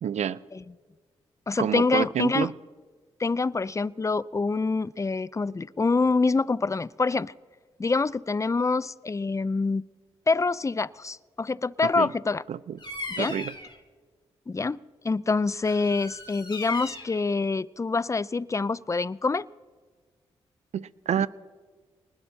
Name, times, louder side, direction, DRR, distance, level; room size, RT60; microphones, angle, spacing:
voice 1, 0.0-0.4 1.6-2.5 12.0-12.1 12.5-12.8 13.2-13.5 20.7-21.3, right 9 dB, 70° right, 18 dB, 0.6 m, -28 dB
voice 2, 1.5-2.5 3.2-7.3 7.8-9.8 10.3-12.4 13.2-13.4 14.5-14.8 15.0-19.5, left 3 dB, 25° left, 20 dB, 0.5 m, -26 dB
Bird vocalization bird call bird song, 12.8-13.8 15.6-17.2, left 3 dB, 40° left, 3.3 m, -38 dB
25.5 x 20.0 x 2.8 m, 1.5 s
supercardioid pair, 45°, 12 cm